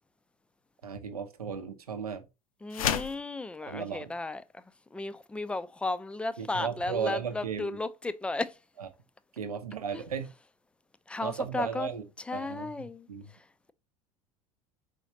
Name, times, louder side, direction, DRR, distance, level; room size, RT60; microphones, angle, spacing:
voice 1, 0.8-2.2 3.6-4.1 6.4-7.8 8.8-8.9 9.3-10.3 11.2-12.1 12.3-13.3, right 7 dB, 80° right, 0.7 m, -35 dB
voice 2, 2.6-4.6 4.9-8.5 11.1-11.9 12.3-13.1, left 2 dB, 5° left, 0.3 m, -34 dB
sound 1, 2.7-3.2, left 9 dB, 70° left, 0.5 m, -29 dB
4.9 x 3.9 x 2.7 m
figure-of-eight pair, 75°, 19 cm